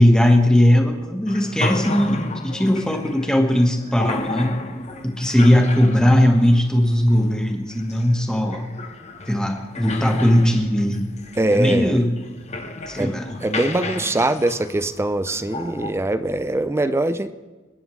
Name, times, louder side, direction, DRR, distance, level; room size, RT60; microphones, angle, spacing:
voice 1, 0.0-4.6 5.0-8.7 9.3-11.1 11.5-12.1 12.9-13.3, left 1 dB, 5° left, 3 dB, 1.4 m, -18 dB
sound 1, 1.3-15.9, left 2 dB, 35° left, 0.9 m, -33 dB
voice 2, 11.4-12.0 13.0-17.3, right 2 dB, 15° right, 12 dB, 0.4 m, -22 dB
28.5 x 11.0 x 3.2 m, 1.3 s
head